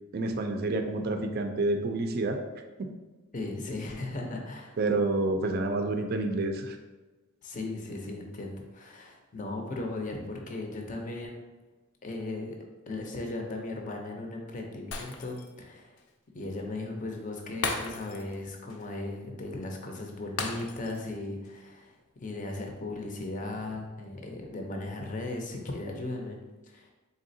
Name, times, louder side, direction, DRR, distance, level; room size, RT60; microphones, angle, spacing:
voice 1, 0.1-2.9 4.8-6.8, right 2 dB, 45° right, 5 dB, 0.4 m, -29 dB
voice 2, 3.3-4.8 7.4-11.4 12.0-12.6 12.9-16.0 16.3-26.4 26.6-26.9, left 2 dB, 35° left, 2 dB, 0.6 m, -37 dB
Shatter, 14.9-15.6 16.0-16.1 17.6-18.4 18.7-18.9 20.4-21.1 21.4-21.6, left 4 dB, 80° left, 0.5 m, -35 dB
4.0 x 3.6 x 2.6 m, 1.2 s
head